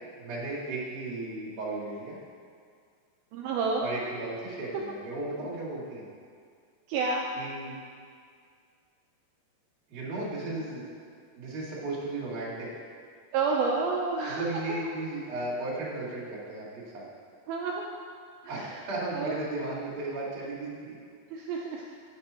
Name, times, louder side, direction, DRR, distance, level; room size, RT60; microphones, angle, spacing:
voice 1, 0.2-2.2 3.8-6.1 7.3-7.8 9.9-10.9 11.3-12.7 14.3-17.1 18.5-21.0, right 2 dB, 35° right, -8 dB, 2.5 m, -35 dB
voice 2, 3.3-3.8 6.9-7.3 13.3-14.5 17.5-17.8 18.4-18.8 19.1-19.4 21.3-21.8, right 4 dB, 85° right, -1 dB, 2.1 m, -29 dB
10.0 x 6.1 x 4.3 m, 2.1 s
omnidirectional pair, 4.9 m